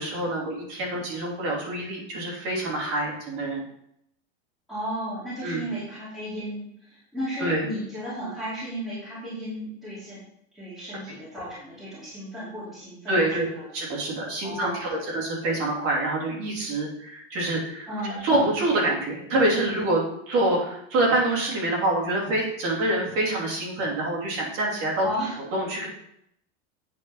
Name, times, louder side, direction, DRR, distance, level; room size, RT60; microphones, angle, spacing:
voice 1, 0.0-3.6 5.4-5.6 7.4-7.7 13.1-13.5 13.7-25.1 25.5-25.9, right 1 dB, 35° right, -2 dB, 3.0 m, -26 dB
voice 2, 4.7-10.2 10.5-13.7 14.4-15.0 17.9-18.2 25.0-25.4, equal, ahead, -10 dB, 2.7 m, -34 dB
8.5 x 5.2 x 5.6 m, 0.74 s
supercardioid pair, 170°, 37 cm